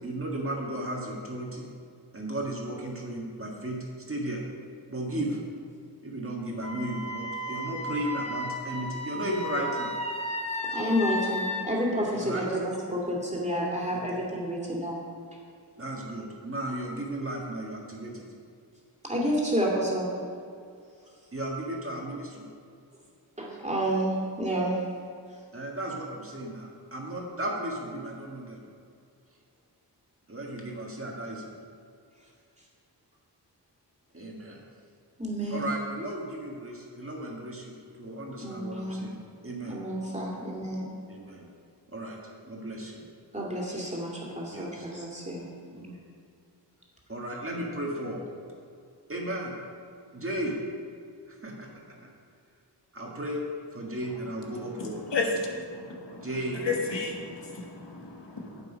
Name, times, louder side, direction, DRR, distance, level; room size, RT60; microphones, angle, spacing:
voice 1, 0.0-1.7 2.1-3.8 4.1-4.4 4.9-5.4 6.0-9.9 12.1-12.6 13.9-14.0 15.8-18.2 21.3-22.5 25.5-28.6 30.3-31.5 34.1-34.6 35.5-39.8 41.1-41.5 41.9-42.2 42.4-43.0 44.5-44.8 45.7-46.0 47.1-48.2 49.1-49.5 50.1-50.5 51.3-52.0 52.9-53.4 53.7-55.0 56.1-56.6, right 1 dB, 30° right, -1 dB, 1.7 m, -35 dB
Wind instrument woodwind instrument, 6.6-11.7, left 1 dB, 15° left, 0.9 m, -34 dB
voice 2, 10.7-15.0 19.0-20.1 23.4-24.7 35.2-35.7 38.4-39.0 39.6-40.9 43.3-45.4, equal, 15° right, -3 dB, 2.4 m, -30 dB
voice 3, 55.1-56.3 56.6-58.6, left 3 dB, 85° left, 1 dB, 1.3 m, -32 dB
8.4 x 8.2 x 5.1 m, 2.4 s
wide cardioid pair, 70°, 41 cm